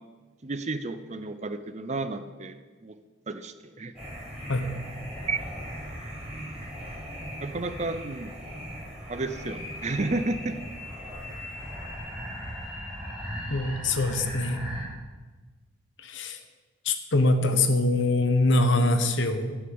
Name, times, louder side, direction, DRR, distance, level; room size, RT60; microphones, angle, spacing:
voice 1, 0.4-2.9 3.3-3.9 5.3-5.4 7.4-8.4 9.1-10.6, right 3 dB, 35° right, 10 dB, 0.6 m, -32 dB
sound 1, 3.9-14.8, equal, 5° right, 3.8 m, -38 dB
sound 2, 9.3-14.0, left 2 dB, 40° left, 3.3 m, -44 dB
voice 2, 13.5-14.6 16.0-16.4 16.8-19.6, left 2 dB, 65° left, 7 dB, 1.1 m, -24 dB
11.0 x 6.3 x 7.9 m, 1.3 s
head